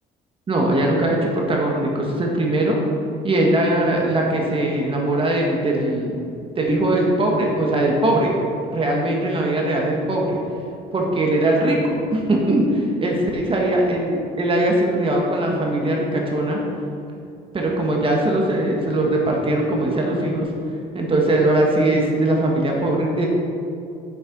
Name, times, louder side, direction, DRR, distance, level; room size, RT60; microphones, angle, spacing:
voice 1, 0.5-2.8 3.2-8.3 8.7-10.4 10.9-11.8 12.1-16.6 17.5-20.5 20.9-23.3, right 1 dB, 30° right, -1 dB, 1.6 m, -20 dB
7.7 x 6.7 x 6.0 m, 2.6 s
cardioid pair, 110°, 17 cm